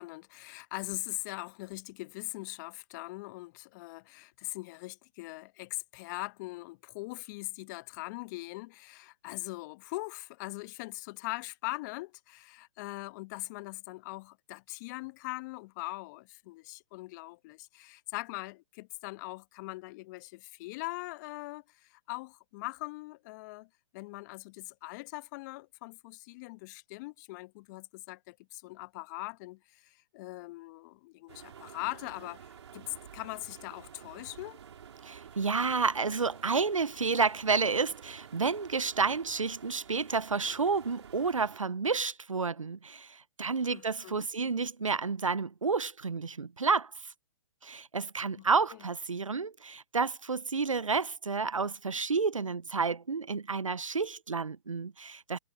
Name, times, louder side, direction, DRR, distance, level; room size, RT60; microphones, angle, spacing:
voice 1, 0.0-23.7 23.9-34.6 43.7-44.2 48.4-48.8, left 23 dB, 35° left, 1.4 m, -41 dB
sound 1, 31.3-41.6, right 8 dB, 65° right, 5.2 m, -51 dB
voice 2, 35.0-47.1 47.6-55.4, right 4 dB, 85° right, 0.8 m, -30 dB
figure-of-eight pair, 125°, 16 cm